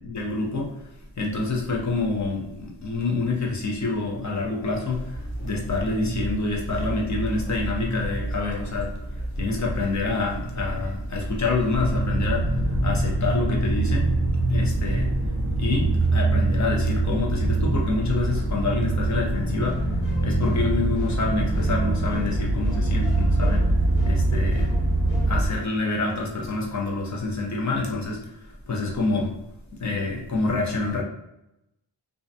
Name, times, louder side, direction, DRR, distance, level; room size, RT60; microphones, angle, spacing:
voice 1, 0.0-8.9 9.4-14.1 14.5-15.1 15.6-23.7 24.0-24.7 25.3-29.4 29.8-31.0, left 3 dB, 40° left, -1 dB, 0.6 m, -27 dB
sound 1, 4.9-12.1, right 1 dB, 60° left, 1.1 m, -32 dB
sound 2, 11.7-25.5, right 2 dB, 30° right, 0.5 m, -23 dB
sound 3, 19.6-25.6, left 2 dB, 85° left, 1.0 m, -42 dB
2.5 x 2.1 x 2.6 m, 0.87 s
wide cardioid pair, 160°, 44 cm